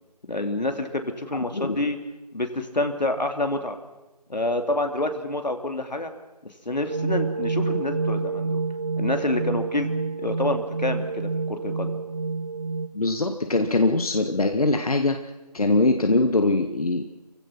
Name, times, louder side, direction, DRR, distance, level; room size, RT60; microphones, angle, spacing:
voice 1, 0.3-2.0 2.3-3.8 4.3-6.1 6.4-8.6 9.0-9.9 10.2-11.9, left 2 dB, 85° left, 6 dB, 3.1 m, -27 dB
sound 1, 6.9-12.9, right 4 dB, 35° right, 0.9 m, -28 dB
voice 2, 12.9-15.2 15.5-17.0, left 2 dB, 60° left, 6 dB, 1.6 m, -22 dB
29.5 x 16.0 x 6.0 m, 1.1 s
figure-of-eight pair, 170°, 21 cm